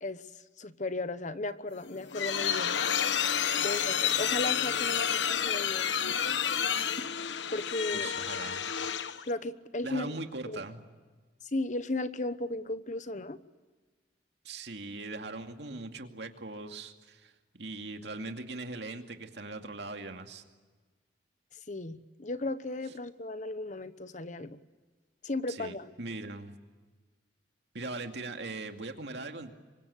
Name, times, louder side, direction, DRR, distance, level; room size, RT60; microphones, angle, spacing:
voice 1, 0.6-2.8 3.5-6.0 7.5-8.1 9.3-10.1 10.5-10.6 11.5-13.4 21.7-24.6 25.2-25.9, left 2 dB, 45° left, 13 dB, 1.1 m, -35 dB
sound 1, 1.8-9.3, left 8 dB, 90° left, 1.1 m, -30 dB
voice 2, 7.9-8.6 9.8-10.8 14.4-17.3 17.6-20.4 25.5-26.5 27.7-29.5, right 2 dB, 70° right, 5 dB, 2.4 m, -40 dB
27.0 x 24.5 x 8.3 m, 1.3 s
head